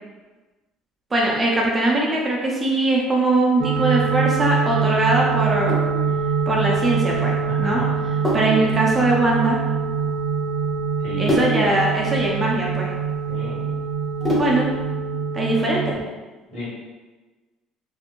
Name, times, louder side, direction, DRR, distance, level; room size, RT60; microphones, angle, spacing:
voice 1, 1.1-5.8 6.5-7.8 8.3-9.6 11.2-12.9 14.4-14.7 15.3-16.0, right 2 dB, 20° right, -3 dB, 0.4 m, -21 dB
sound 1, 3.6-15.9, right 6 dB, 70° right, 0.6 m, -24 dB
Sink (filling or washing), 5.4-14.8, left 1 dB, 20° left, 0.6 m, -29 dB
voice 2, 7.5-8.0 11.0-11.4 13.3-13.7 16.5-16.7, equal, 55° left, -7 dB, 1.3 m, -33 dB
2.5 x 2.2 x 2.9 m, 1.2 s
cardioid pair, 130°, 0 cm